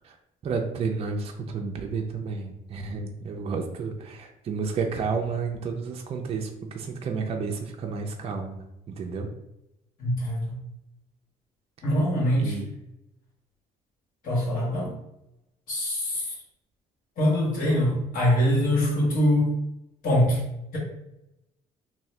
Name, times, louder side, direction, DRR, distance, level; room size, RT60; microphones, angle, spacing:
voice 1, 0.4-9.3 12.4-12.7, right 5 dB, 40° right, 2 dB, 0.5 m, -31 dB
voice 2, 10.0-10.6 11.8-12.6 14.2-14.9 15.7-16.3 17.2-19.6 20.0-20.4, equal, 60° left, -4 dB, 1.4 m, -23 dB
2.7 x 2.6 x 3.2 m, 0.88 s
cardioid pair, 100°, 16 cm